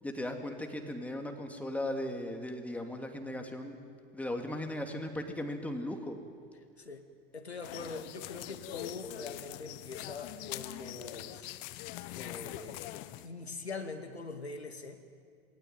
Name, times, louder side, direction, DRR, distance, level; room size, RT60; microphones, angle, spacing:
voice 1, 0.0-3.8 4.1-6.2, left 1 dB, 5° left, 4 dB, 2.8 m, -37 dB
voice 2, 6.8-7.1 7.3-11.5 12.2-12.9 13.2-15.0, left 4 dB, 80° left, 5 dB, 2.1 m, -43 dB
sound 1, 7.6-13.3, left 16 dB, 45° left, 1.1 m, -43 dB
27.0 x 20.0 x 9.2 m, 2.2 s
figure-of-eight pair, 80°, 32 cm